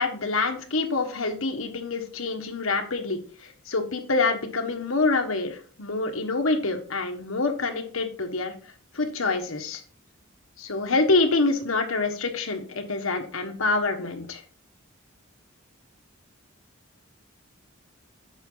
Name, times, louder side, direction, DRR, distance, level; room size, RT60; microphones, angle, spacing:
voice 1, 0.0-8.5 8.9-9.8 10.6-14.4, left 3 dB, 85° left, 4 dB, 1.4 m, -26 dB
8.1 x 5.8 x 4.0 m, 0.43 s
head